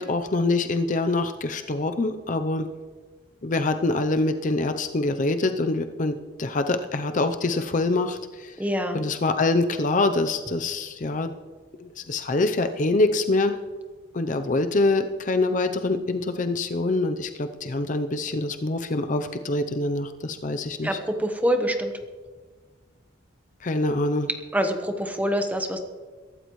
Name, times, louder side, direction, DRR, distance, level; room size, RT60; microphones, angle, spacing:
voice 1, 0.0-2.7 3.4-8.5 8.9-11.3 11.8-13.6 14.1-21.0 23.6-24.3, left 2 dB, 40° left, 8 dB, 0.6 m, -25 dB
voice 2, 8.6-9.0 20.8-21.9 24.5-25.8, equal, 10° right, 5 dB, 1.0 m, -25 dB
22.5 x 12.5 x 3.1 m, 1.4 s
head